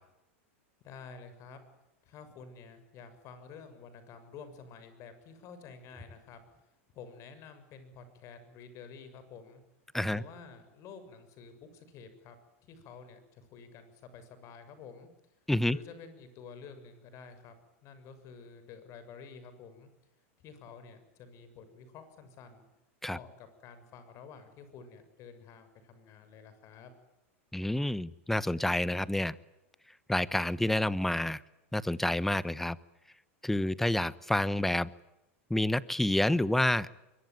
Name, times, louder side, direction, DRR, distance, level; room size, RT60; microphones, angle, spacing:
voice 1, 0.8-1.6 2.0-6.4 6.9-9.6 10.1-12.3 12.6-15.1 15.7-17.5 17.8-19.9 20.4-22.7 23.1-26.9, left 5 dB, 45° left, 11 dB, 6.8 m, -50 dB
voice 2, 27.5-29.3 30.1-31.4 31.7-32.8 33.4-34.9 35.5-37.0, left 1 dB, 5° left, 18 dB, 1.0 m, -28 dB
24.5 x 23.0 x 9.4 m, 0.91 s
hypercardioid pair, 120°, 7 cm